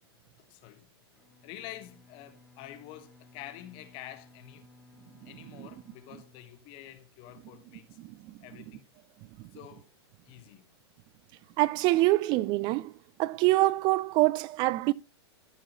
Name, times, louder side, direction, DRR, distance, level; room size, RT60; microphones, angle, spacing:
voice 1, 0.5-0.9 1.4-4.6 5.2-7.8 8.4-8.8 9.5-9.9 10.3-10.7, left 13 dB, 40° left, 1.3 m, -47 dB
Bowed string instrument, 1.1-7.2, left 2 dB, 5° left, 2.0 m, -58 dB
voice 2, 11.6-12.9 13.2-14.9, right 19 dB, 35° right, 0.4 m, -25 dB
14.0 x 6.0 x 2.9 m
figure-of-eight pair, 100°, 14 cm